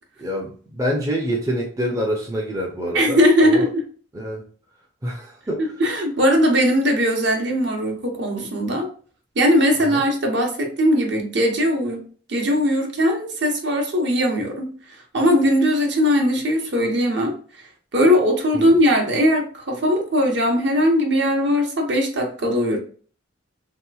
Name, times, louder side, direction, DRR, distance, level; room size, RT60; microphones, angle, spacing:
voice 1, 0.2-3.7 4.1-4.4 5.0-5.7 9.8-10.0 18.5-18.8, equal, 15° right, 0 dB, 0.4 m, -26 dB
voice 2, 2.9-3.8 5.6-8.9 9.4-12.0 12.3-14.7 15.1-17.3 17.9-22.8, equal, 60° right, 2 dB, 0.8 m, -19 dB
3.3 x 2.8 x 2.3 m, 0.43 s
head